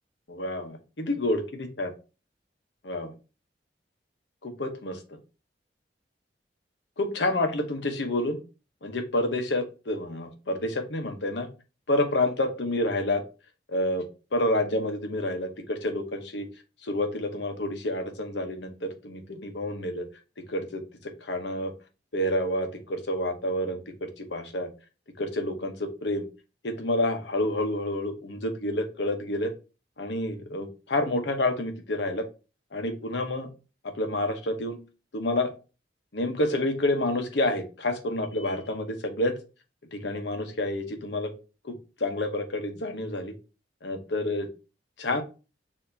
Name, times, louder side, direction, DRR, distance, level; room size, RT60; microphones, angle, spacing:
voice 1, 0.3-1.4 1.8-1.9 2.8-3.1 4.4-5.0 7.0-8.4 8.8-11.5 11.9-13.2 13.7-14.0 14.3-16.5 16.8-20.1 20.5-21.7 22.1-24.7 25.2-26.3 26.6-29.5 30.0-32.3 32.7-33.5 33.8-34.8 35.1-35.5 36.1-39.4 39.9-41.3 41.6-41.7 42.0-43.3 43.8-44.5 45.0-45.2, left 1 dB, 85° left, 5 dB, 0.9 m, -29 dB
6.7 x 2.8 x 2.7 m, 0.31 s
head